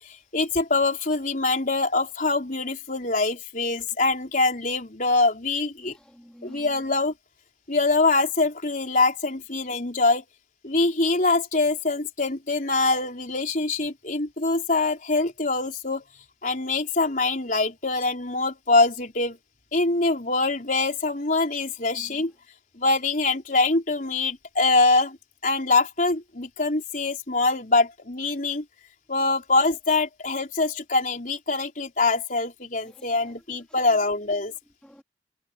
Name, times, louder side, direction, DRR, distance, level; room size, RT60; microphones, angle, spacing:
voice 1, 0.3-5.9 6.4-7.1 7.7-10.2 10.6-16.0 16.4-19.4 19.7-22.3 22.8-25.2 25.4-28.6 29.1-34.5, left 3 dB, 50° left, 4.4 m, -24 dB
voice 2, 5.9-6.7 21.9-22.2 32.8-33.4 33.9-34.0 34.8-35.0, equal, 5° left, 3.1 m, -49 dB
head